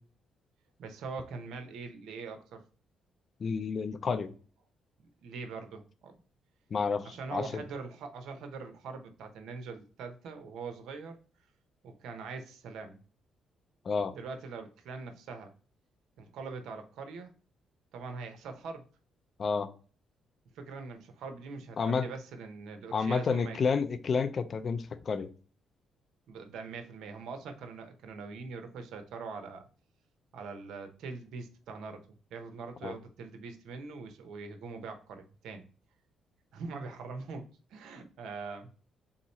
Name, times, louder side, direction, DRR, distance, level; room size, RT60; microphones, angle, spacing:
voice 1, 0.8-2.6 5.0-6.1 7.0-11.2 11.8-13.0 14.1-15.5 16.2-17.3 17.9-18.8 20.5-23.6 26.3-29.6 30.3-35.6 36.5-37.4 37.7-38.7, right 4 dB, 80° right, 6 dB, 0.8 m, -42 dB
voice 2, 3.4-4.3 6.7-7.6 13.8-14.1 19.4-19.7 21.8-22.1 22.9-25.3 32.8-32.9, left 5 dB, 45° left, 11 dB, 0.5 m, -30 dB
3.7 x 2.9 x 4.2 m, 0.39 s
cardioid pair, 90°, 0 cm